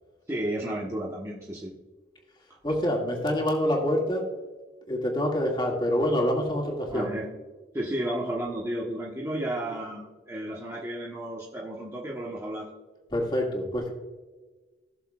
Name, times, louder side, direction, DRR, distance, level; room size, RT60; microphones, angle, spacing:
voice 1, 0.3-1.7 6.9-7.3 7.7-12.7, right 1 dB, 15° right, -5 dB, 1.2 m, -32 dB
voice 2, 2.6-4.2 4.9-7.1 13.1-13.9, equal, 25° left, -1 dB, 2.2 m, -26 dB
17.5 x 7.0 x 2.4 m, 1.3 s
head